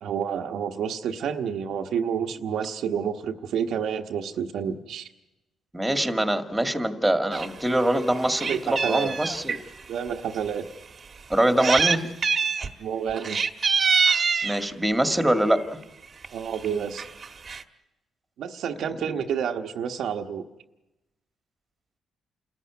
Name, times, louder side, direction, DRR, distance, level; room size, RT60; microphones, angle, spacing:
voice 1, 0.0-5.1 8.5-9.1 9.9-10.7 12.8-13.4 16.3-17.0 18.4-20.4, right 7 dB, 75° right, 3 dB, 1.2 m, -29 dB
voice 2, 5.7-9.6 11.3-12.1 14.4-15.6 18.9-19.2, right 1 dB, 5° right, 6 dB, 1.9 m, -24 dB
Meow, 7.3-7.5 7.9-9.6 10.3-10.4 11.3-12.0 12.2-12.7 13.1-14.6 15.6-15.8 16.2-16.3 16.5-16.7 17.0-17.6, right 5 dB, 40° right, 1.3 m, -25 dB
28.0 x 14.0 x 9.6 m, 0.99 s
cardioid pair, 90°, 0 cm